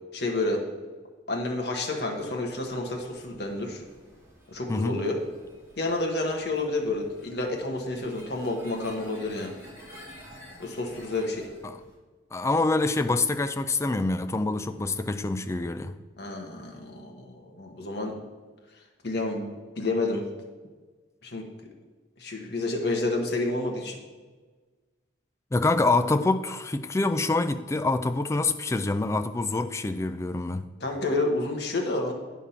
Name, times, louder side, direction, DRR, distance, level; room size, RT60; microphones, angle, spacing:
voice 1, 0.1-0.6 1.3-3.8 4.5-5.2 5.8-9.5 10.6-11.5 16.2-18.2 19.0-20.3 21.2-21.4 22.2-24.0 30.8-32.1, left 2 dB, 60° left, 1.3 m, -29 dB
sound 1, 2.1-11.9, equal, 15° right, 2.4 m, -51 dB
voice 2, 12.3-15.9 25.5-30.7, left 2 dB, 15° left, 0.3 m, -26 dB
9.6 x 3.6 x 5.8 m
head